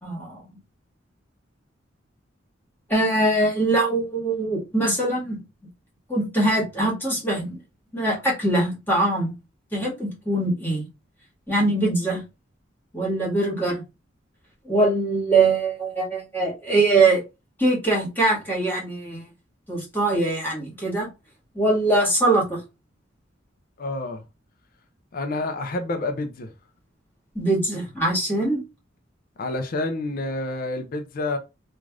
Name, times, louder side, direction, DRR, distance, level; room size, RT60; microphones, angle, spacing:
voice 1, 0.0-0.6 2.9-5.4 6.1-7.6 7.9-9.3 9.7-10.8 11.5-12.2 12.9-13.8 14.6-17.2 17.6-19.2 19.7-21.1 21.5-22.6 27.3-28.6, right 2 dB, 10° left, 1.6 m, -22 dB
voice 2, 23.8-24.2 25.1-26.5 29.4-31.4, left 2 dB, 50° left, 0.4 m, -28 dB
3.2 x 2.4 x 2.4 m
head